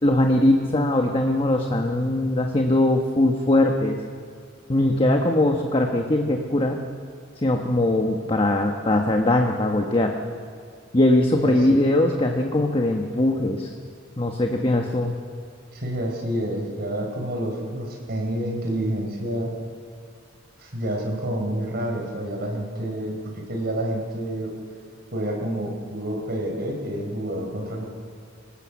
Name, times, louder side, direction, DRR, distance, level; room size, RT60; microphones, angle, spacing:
voice 1, 0.0-4.0 4.7-6.8 7.4-10.1 10.9-13.7 14.2-15.1, left 1 dB, 30° left, 2 dB, 1.2 m, -21 dB
voice 2, 11.3-11.7 15.7-19.5 20.6-24.5 25.1-27.8, right 1 dB, 55° right, 1 dB, 4.5 m, -28 dB
25.5 x 19.0 x 7.2 m, 2.1 s
head